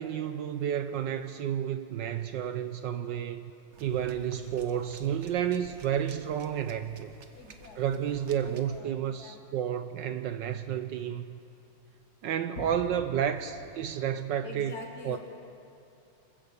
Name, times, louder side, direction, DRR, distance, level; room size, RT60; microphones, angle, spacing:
voice 1, 0.0-3.5 3.8-7.1 7.8-11.4 12.2-14.7 15.0-15.2, right 9 dB, 70° right, 10 dB, 1.2 m, -31 dB
sound 1, 3.7-8.8, right 4 dB, 45° right, 1.0 m, -52 dB
voice 2, 4.3-5.3 7.3-7.8 8.4-9.4 12.6-13.0 14.4-15.2, left 2 dB, 50° left, 0 dB, 2.7 m, -46 dB
26.0 x 15.0 x 6.9 m, 2.7 s
omnidirectional pair, 2.3 m